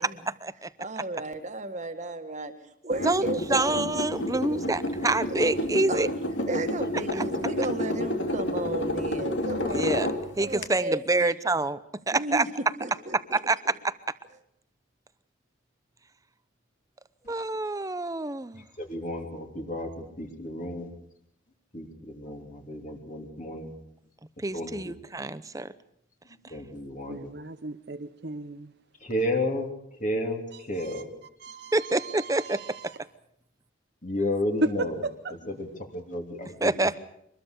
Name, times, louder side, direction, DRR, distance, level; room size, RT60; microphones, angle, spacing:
voice 1, 0.0-0.3 0.8-3.8 4.3-4.6 5.3-6.1 6.5-9.9 10.4-11.3 12.1-13.4, right 2 dB, 35° right, 7 dB, 1.8 m, -34 dB
sound 1, 2.9-10.6, left 1 dB, 70° left, 2.8 m, -30 dB
voice 2, 3.0-6.1 9.7-10.1 10.4-11.8 12.1-12.4 13.3-13.6 17.3-18.6 24.4-25.7 31.7-32.8 36.6-37.0, right 2 dB, 15° right, 15 dB, 0.8 m, -27 dB
voice 3, 18.5-20.9 21.7-23.7 24.5-25.0 26.5-27.3 29.0-29.7 30.0-31.2 34.0-35.0 35.5-36.7, left 1 dB, 40° left, 2 dB, 3.1 m, -32 dB
voice 4, 27.1-28.7 30.8-31.0 31.4-33.0 34.8-35.3, right 3 dB, 55° right, 8 dB, 0.9 m, -38 dB
24.5 x 21.0 x 6.7 m, 0.74 s
head